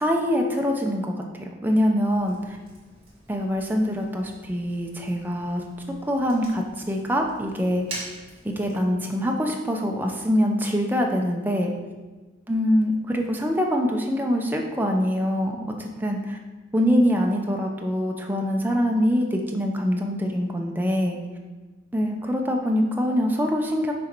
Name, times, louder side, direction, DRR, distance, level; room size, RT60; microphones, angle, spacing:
voice 1, 0.0-2.6 3.3-5.6 6.1-8.0 8.4-11.7 12.5-16.4 16.7-21.2 21.9-23.9, equal, 10° right, 1 dB, 0.6 m, -24 dB
Fire, 2.0-8.8, right 2 dB, 30° right, 1.8 m, -44 dB
6.2 x 4.2 x 4.5 m, 1.3 s
head